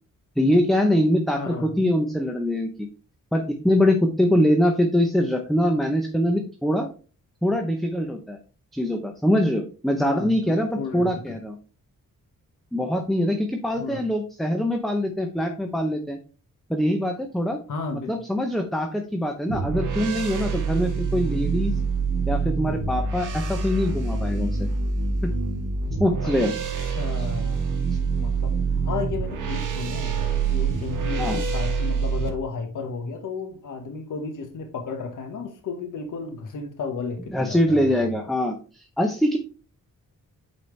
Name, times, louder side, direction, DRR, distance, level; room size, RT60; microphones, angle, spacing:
voice 1, 0.4-2.9 3.3-6.9 7.4-8.4 8.7-10.7 10.9-11.6 12.7-16.2 16.7-17.6 18.1-21.8 22.3-24.7 25.2-25.3 26.0-26.5 31.2-31.4 37.3-39.4, left 1 dB, ahead, 4 dB, 0.6 m, -23 dB
voice 2, 1.4-1.7 10.0-11.4 13.8-14.0 17.7-18.1 26.2-26.3 26.8-27.7 28.2-38.1, left 4 dB, 70° left, 5 dB, 1.2 m, -33 dB
sound 1, 19.5-32.3, right 4 dB, 70° right, 1.4 m, -26 dB
8.7 x 4.3 x 3.2 m, 0.37 s
wide cardioid pair, 150°, 33 cm